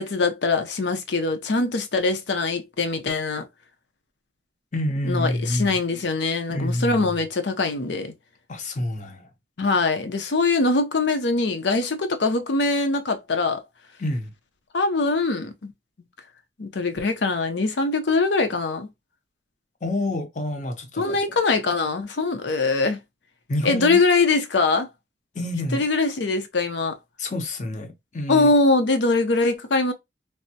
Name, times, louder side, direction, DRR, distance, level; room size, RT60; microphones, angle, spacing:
voice 1, 0.0-3.5 5.0-8.1 9.6-13.6 14.7-15.7 16.6-18.9 21.0-23.0 23.6-24.9 25.7-27.0 28.3-29.9, left 3 dB, 85° left, 0.6 m, -22 dB
voice 2, 4.7-5.8 6.5-7.2 8.5-9.3 14.0-14.3 19.8-21.4 23.5-24.0 25.3-25.8 27.2-28.5, left 1 dB, 45° left, 0.6 m, -28 dB
3.3 x 2.0 x 2.7 m
head